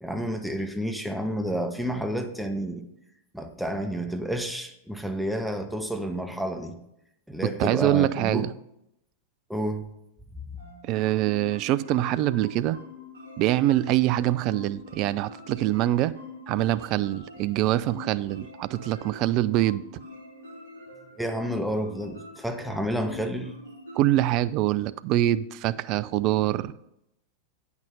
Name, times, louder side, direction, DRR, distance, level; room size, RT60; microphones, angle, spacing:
voice 1, 0.0-2.8 3.3-6.8 7.3-8.5 9.5-9.9 21.2-23.5, equal, ahead, 0.7 m, -30 dB
voice 2, 7.4-8.5 10.9-12.8 13.4-16.1 16.5-19.8 23.9-26.7, right 14 dB, 40° right, 0.3 m, -24 dB
sound 1, 10.6-24.3, left 2 dB, 60° right, 3.4 m, -45 dB
8.9 x 5.9 x 5.4 m
figure-of-eight pair, 90°, 0 cm